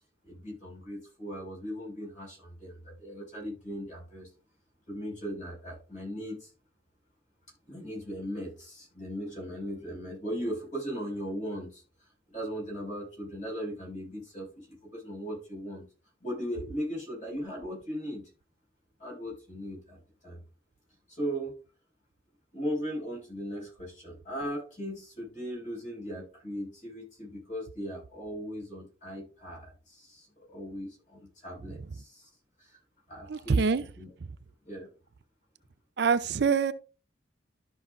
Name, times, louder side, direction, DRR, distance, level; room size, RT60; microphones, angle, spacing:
voice 1, 0.2-4.3 4.9-6.5 7.7-11.8 12.3-15.9 16.2-18.2 19.0-20.4 21.1-21.5 22.5-32.3 32.6-32.8 33.1-33.6 34.0-34.1 34.6-34.9, equal, 40° left, 5.3 m, -38 dB
voice 2, 33.3-33.8 36.0-36.7, right 5 dB, 60° right, 0.5 m, -25 dB
13.0 x 5.9 x 2.5 m
head